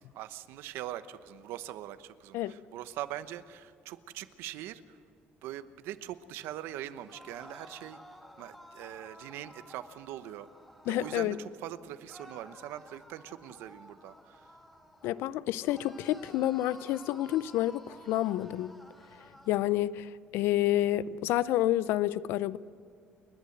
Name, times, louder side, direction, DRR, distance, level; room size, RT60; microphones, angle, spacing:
voice 1, 0.1-5.0 5.4-8.0 8.4-10.5 10.8-14.5, right 13 dB, 85° right, 13 dB, 1.0 m, -42 dB
sound 1, 7.0-11.3 12.1-15.2 15.6-19.5, equal, 5° left, 2.0 m, -53 dB
voice 2, 10.9-11.4 15.0-18.7 19.5-22.6, left 14 dB, 85° left, 18 dB, 0.5 m, -29 dB
30.0 x 11.5 x 8.0 m, 2.3 s
cardioid pair, 145°, 4 cm